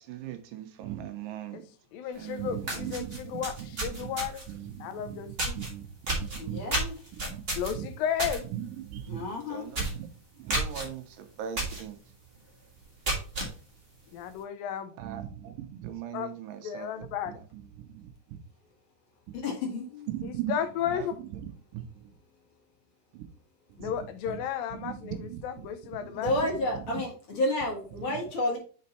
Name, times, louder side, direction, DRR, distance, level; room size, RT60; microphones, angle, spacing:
voice 1, 0.0-1.6 2.2-6.6 7.1-7.4 7.8-7.9 8.5-9.9 10.4-12.0 15.0-18.4 20.1-20.5 20.9-21.1 21.3-21.4 21.7-22.1 23.8-23.9 24.3-24.4 24.7-25.4 25.9-26.5 26.7-27.0 28.1-28.2, right 11 dB, 80° right, 2.3 m, -39 dB
voice 2, 1.9-4.4 4.8-5.6 7.5-8.5 14.1-14.9 16.1-16.3 16.6-17.4 20.2-21.2 23.8-26.3, left 9 dB, 90° left, 2.5 m, -33 dB
sound 1, 2.2-2.3 2.6-4.5 5.4-5.7 6.1-8.4 8.7-9.0 9.3-9.4 9.7-10.0 10.5-10.8 11.6-11.8 12.3-12.4 12.8-13.5, right 2 dB, 30° right, 1.2 m, -31 dB
voice 3, 6.4-6.9 9.1-9.7 19.4-20.1 26.1-28.6, left 1 dB, 45° left, 1.9 m, -30 dB
5.3 x 5.1 x 4.1 m
omnidirectional pair, 4.0 m